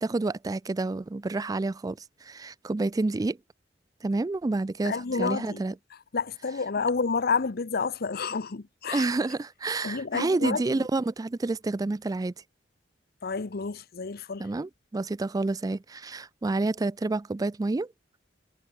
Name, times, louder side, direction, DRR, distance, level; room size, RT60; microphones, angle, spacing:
voice 1, 0.0-3.4 4.0-5.7 8.9-12.3 14.4-17.9, right 2 dB, 20° right, 0.3 m, -29 dB
voice 2, 4.8-5.6 6.1-9.0 9.8-10.9 13.2-14.5, left 4 dB, 55° left, 0.8 m, -29 dB
head